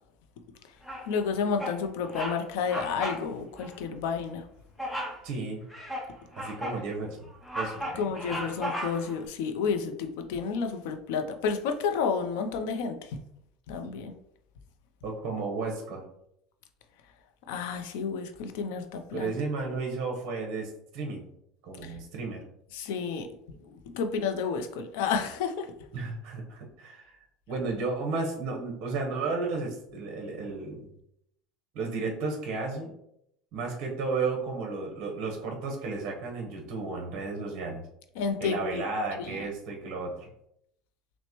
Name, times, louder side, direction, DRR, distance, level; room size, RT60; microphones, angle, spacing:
Bird vocalization bird call bird song, 0.8-1.2 1.6-1.8 2.1-2.4 2.7-3.2 3.6-3.7 4.8-5.2 5.7-6.8 7.2-9.2, equal, 5° left, 0.7 m, -35 dB
voice 1, 1.1-4.4 8.0-13.2 13.7-14.1 17.5-19.3 21.8-22.0 22.7-23.3 23.6-25.7 38.2-38.8 39.2-39.5, left 6 dB, 75° left, 6 dB, 0.5 m, -31 dB
voice 2, 5.2-5.7 6.4-8.3 15.0-16.0 19.1-21.3 21.6-22.4 25.9-27.1 27.5-30.9 31.7-32.9 33.5-37.8 38.4-40.3, right 3 dB, 50° right, 1 dB, 1.0 m, -33 dB
6.0 x 2.1 x 3.0 m, 0.77 s
cardioid pair, 155°, 0 cm